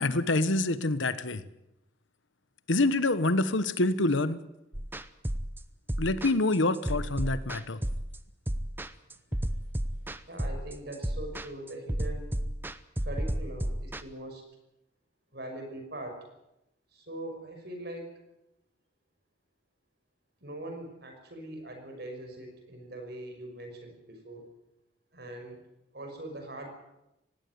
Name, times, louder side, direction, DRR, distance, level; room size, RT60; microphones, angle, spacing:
voice 1, 0.0-1.4 2.7-4.4 6.0-7.8, left 2 dB, 85° left, 14 dB, 1.2 m, -26 dB
sound 1, 4.7-14.0, equal, 10° right, 0.8 m, -33 dB
voice 2, 10.3-12.3 13.0-14.4 15.3-16.3 16.9-18.1 20.4-24.5 25.1-25.6 25.9-26.7, right 1 dB, 55° right, 5 dB, 5.7 m, -42 dB
20.0 x 16.5 x 9.4 m, 0.89 s
head